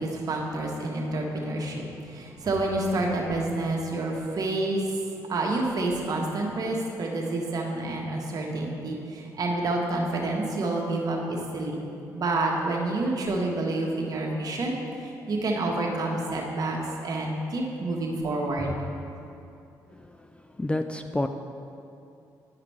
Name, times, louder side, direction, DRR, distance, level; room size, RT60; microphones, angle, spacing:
voice 1, 0.0-4.8 5.3-11.8 12.1-16.8 17.0-18.9, right 2 dB, 50° right, -1 dB, 1.3 m, -28 dB
voice 2, 20.6-21.3, left 1 dB, 15° left, 7 dB, 0.3 m, -29 dB
11.0 x 4.8 x 3.5 m, 2.7 s
supercardioid pair, 65°, 8 cm